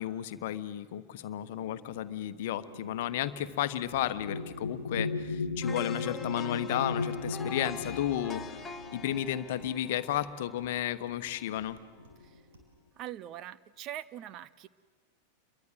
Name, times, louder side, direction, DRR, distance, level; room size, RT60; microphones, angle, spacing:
voice 1, 0.0-8.6 8.9-11.8, left 12 dB, 50° left, 12 dB, 1.2 m, -33 dB
sound 1, 1.5-10.4 11.3-11.5 11.8-12.4, left 3 dB, 75° left, 1.0 m, -38 dB
sound 2, 5.6-11.6 12.0-12.2, left 4 dB, 15° left, 1.7 m, -44 dB
sound 3, 7.6-7.8 8.1-8.3 8.6-8.8 9.1-9.3 9.6-9.8 10.1-10.3 10.6-10.7 11.1-11.2 11.6-11.7 12.0-12.2 12.5-12.7, right 3 dB, 55° right, 5.9 m, -58 dB
voice 2, 13.0-14.7, right 12 dB, 35° right, 15 dB, 0.8 m, -42 dB
28.5 x 23.0 x 7.7 m, 1.5 s
figure-of-eight pair, 90°, 0 cm